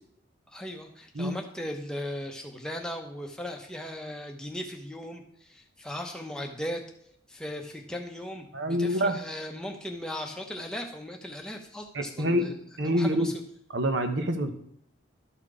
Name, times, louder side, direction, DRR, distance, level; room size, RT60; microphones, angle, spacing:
voice 1, 0.5-6.8 7.3-13.3, left 1 dB, 5° left, 2 dB, 0.9 m, -38 dB
voice 2, 8.5-9.2 11.9-12.5 12.8-13.3 13.7-14.5, equal, 65° right, 6 dB, 1.0 m, -26 dB
12.5 x 4.4 x 4.9 m, 0.72 s
head